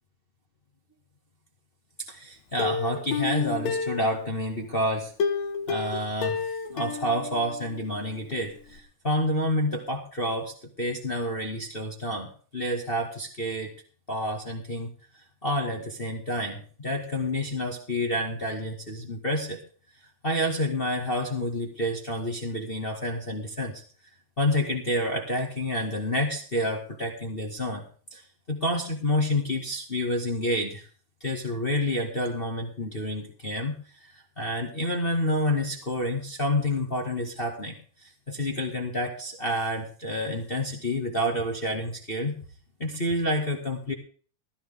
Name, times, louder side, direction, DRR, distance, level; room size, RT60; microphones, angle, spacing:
voice 1, 2.0-5.1 5.7-13.8 14.1-14.9 15.4-19.6 20.2-23.8 24.4-27.8 28.1-28.2 28.5-30.8 31.2-42.4 42.8-43.9, left 1 dB, 25° left, 2 dB, 1.5 m, -29 dB
Plucked string instrument, 2.6-4.6 5.2-8.0 8.3-8.4 8.8-8.9, left 6 dB, 65° left, 2.5 m, -31 dB
15.5 x 14.5 x 3.6 m, 0.41 s
omnidirectional pair, 3.5 m